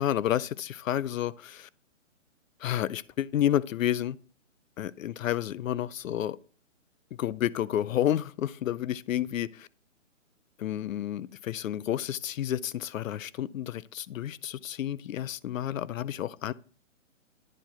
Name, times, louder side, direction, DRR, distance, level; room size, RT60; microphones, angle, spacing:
voice 1, 0.0-1.7 2.6-4.2 4.8-6.4 7.2-9.7 10.6-16.5, left 11 dB, 85° left, 0.5 m, -30 dB
9.9 x 4.6 x 4.3 m
hypercardioid pair, 180°, 39 cm